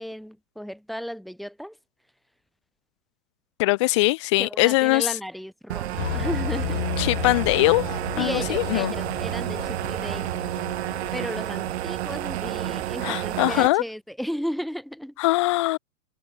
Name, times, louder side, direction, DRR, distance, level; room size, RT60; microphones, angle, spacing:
voice 1, 0.0-1.8 4.4-6.9 8.2-10.6 11.1-15.1, equal, ahead, 7.6 m, -34 dB
voice 2, 3.6-5.1 7.0-7.8 8.2-8.9 13.0-13.8 15.2-15.8, left 21 dB, 20° left, 0.8 m, -21 dB
sound 1, 5.7-13.7, right 15 dB, 40° right, 4.2 m, -30 dB
sound 2, 6.0-13.0, left 12 dB, 50° left, 3.2 m, -34 dB
hypercardioid pair, 175°, 47 cm